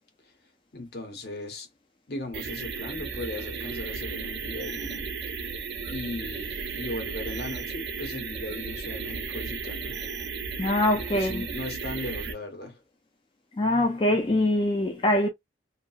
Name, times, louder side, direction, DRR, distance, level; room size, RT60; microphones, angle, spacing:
voice 1, 0.7-1.7 2.1-5.1 5.9-10.0 10.9-12.8, left 2 dB, 60° left, 1.1 m, -37 dB
sound 1, 2.3-12.3, right 5 dB, 75° right, 0.6 m, -35 dB
voice 2, 10.6-11.4 13.6-15.3, left 1 dB, 30° left, 0.4 m, -23 dB
2.8 x 2.5 x 2.4 m
head